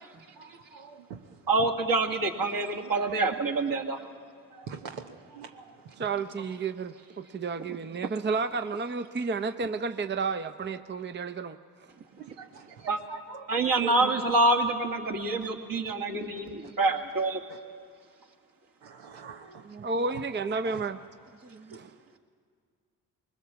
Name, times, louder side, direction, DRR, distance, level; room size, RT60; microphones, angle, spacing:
voice 1, 0.4-1.4 2.8-3.2 4.0-4.1 4.5-6.2 12.2-13.5 13.8-14.1 16.6-16.7 17.5-17.6 18.8-20.2 20.6-20.8 21.7-21.9, right 6 dB, 80° right, 4 dB, 1.0 m, -44 dB
voice 2, 1.5-4.0 7.7-7.8 12.9-13.0 13.5-17.4, right 2 dB, 50° right, 2 dB, 2.4 m, -26 dB
voice 3, 6.0-11.6 19.6-21.0 21.4-21.9, right 4 dB, 25° right, 9 dB, 0.7 m, -32 dB
21.0 x 20.0 x 7.1 m, 2.1 s
hypercardioid pair, 45°, 42 cm